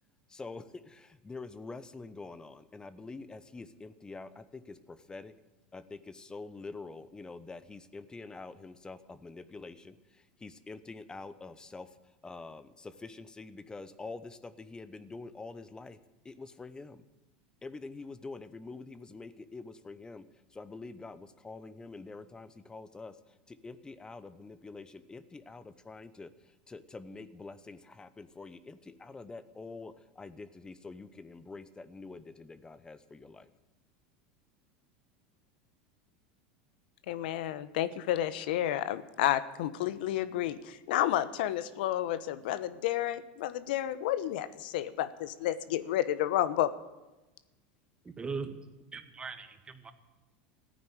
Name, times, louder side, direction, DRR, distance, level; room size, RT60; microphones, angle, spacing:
voice 1, 0.3-5.3 5.7-12.0 12.2-16.0 16.2-17.0 17.6-33.4, left 3 dB, 15° left, 14 dB, 1.0 m, -46 dB
voice 2, 37.1-46.7, left 12 dB, 75° left, 15 dB, 1.0 m, -31 dB
voice 3, 48.0-48.6 48.9-49.9, right 5 dB, 20° right, 8 dB, 1.7 m, -39 dB
15.0 x 9.6 x 9.6 m, 1.1 s
supercardioid pair, 110°, 5 cm